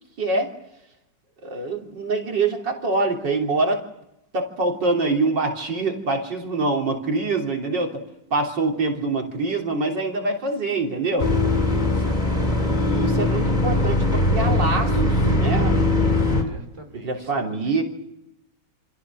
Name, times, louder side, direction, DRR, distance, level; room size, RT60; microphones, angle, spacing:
voice 1, 0.2-0.5 1.4-3.8 4.3-8.0 8.3-11.3 12.6-15.7 16.9-17.8, right 3 dB, 80° right, 1 dB, 4.0 m, -25 dB
sound 1, 11.2-16.4, left 2 dB, 20° left, 3.3 m, -20 dB
voice 2, 11.8-13.6 16.1-17.8, right 1 dB, 15° right, 4 dB, 4.3 m, -44 dB
29.0 x 26.5 x 6.3 m, 0.85 s
omnidirectional pair, 1.9 m